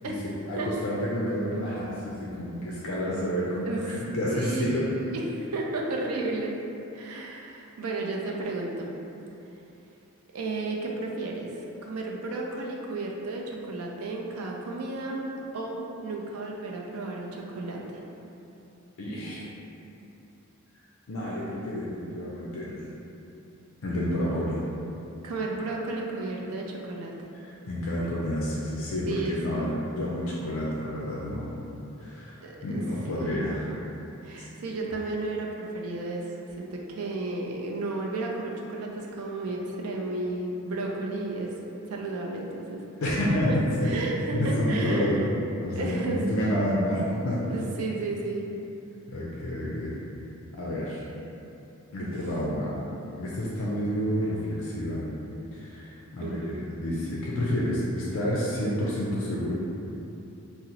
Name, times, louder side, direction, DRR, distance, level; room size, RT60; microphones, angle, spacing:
voice 1, 0.5-4.9 19.0-19.4 21.1-22.8 23.8-24.6 27.4-31.5 32.0-33.8 34.4-34.5 43.0-43.9 44.3-45.2 45.6-47.5 49.1-50.0 50.6-51.0 51.9-52.7 53.2-55.0 55.5-59.5, equal, 70° left, -6 dB, 0.4 m, -29 dB
voice 2, 4.3-6.5 6.9-8.9 10.3-15.3 15.5-18.0 25.2-27.1 29.1-29.7 32.4-32.8 33.2-33.5 34.2-41.5 41.9-42.8 43.5-43.6 43.8-45.2 45.7-46.2 47.5-48.5 52.0-52.1 56.2-56.7, right 2 dB, 90° right, -1 dB, 0.4 m, -33 dB
2.8 x 2.0 x 3.9 m, 2.9 s
head